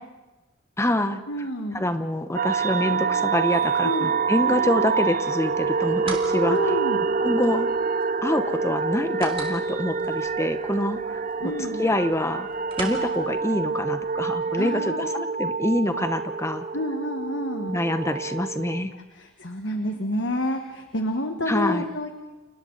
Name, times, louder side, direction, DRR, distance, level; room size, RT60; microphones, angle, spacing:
voice 1, 0.8-1.2 1.7-6.7 7.2-7.7 8.2-11.2 11.8-12.5 12.8-16.6 17.7-18.9 21.5-21.8, left 1 dB, 15° left, 9 dB, 0.9 m, -26 dB
voice 2, 1.3-1.8 3.8-4.1 6.5-7.0 11.4-11.8 14.5-15.3 16.7-17.8 18.9-22.1, left 1 dB, 60° left, 4 dB, 1.6 m, -29 dB
sound 1, 2.3-18.8, right 5 dB, 45° right, 0.6 m, -26 dB
sound 2, 5.5-14.4, right 3 dB, 30° right, 3.4 m, -43 dB
29.5 x 29.5 x 4.1 m, 1.2 s
head